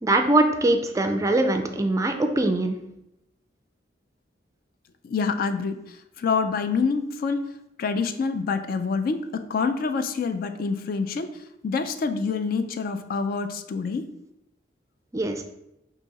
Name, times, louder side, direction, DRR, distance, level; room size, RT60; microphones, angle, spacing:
voice 1, 0.0-2.8 15.1-15.4, right 2 dB, 20° right, 6 dB, 0.3 m, -22 dB
voice 2, 5.0-7.4 7.8-14.1, left 5 dB, 55° left, 9 dB, 0.3 m, -27 dB
4.8 x 2.7 x 3.9 m, 0.84 s
head